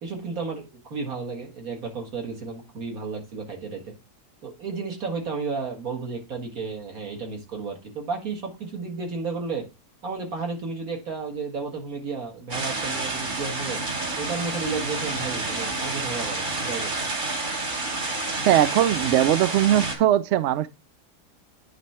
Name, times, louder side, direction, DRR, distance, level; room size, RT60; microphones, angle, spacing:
voice 1, 0.0-3.9 4.4-9.6 10.0-13.8 14.2-16.9, right 4 dB, 60° right, 2.1 m, -32 dB
sound 1, 12.5-19.9, right 2 dB, 30° right, 1.2 m, -29 dB
voice 2, 18.5-20.7, right 12 dB, 80° right, 0.6 m, -20 dB
9.3 x 3.4 x 4.2 m
omnidirectional pair, 1.8 m